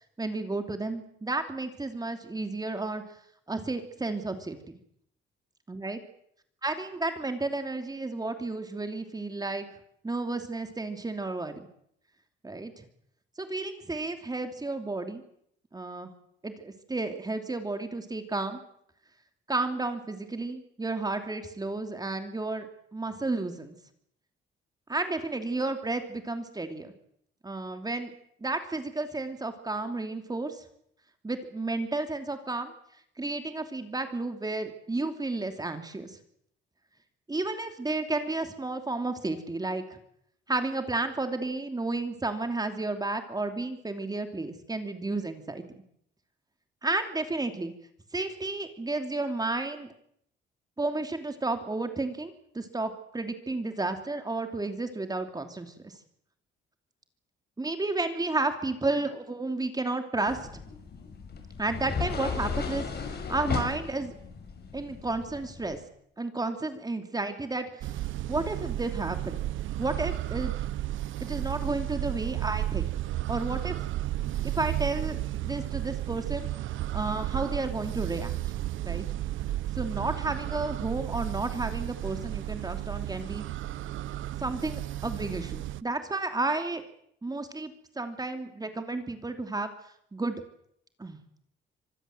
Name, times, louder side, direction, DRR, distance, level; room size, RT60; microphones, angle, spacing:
voice 1, 0.2-3.0 3.5-4.6 5.7-6.0 6.6-9.7 10.0-11.6 12.4-12.9 13.4-15.2 15.7-16.1 16.4-18.6 19.5-22.7 22.9-23.7 24.9-26.9 27.4-28.1 28.4-30.6 31.2-32.7 33.2-36.2 37.3-40.0 40.5-45.6 46.8-47.7 48.1-49.9 50.8-55.9 57.6-60.6 61.6-64.1 64.7-65.8 66.2-67.9 68.3-69.5 69.8-70.5 71.3-72.9 73.3-73.8 74.4-76.5 76.9-78.3 78.8-79.0 79.7-83.4 84.4-86.8 87.2-89.7 90.1-90.4 91.0-91.2, right 2 dB, 20° right, 7 dB, 2.8 m, -32 dB
sound 1, 60.3-65.8, left 5 dB, 55° left, 6.9 m, -35 dB
sound 2, 67.8-85.8, right 14 dB, 75° right, 0.9 m, -33 dB
25.5 x 19.5 x 7.8 m, 0.71 s
cardioid pair, 90°, 20 cm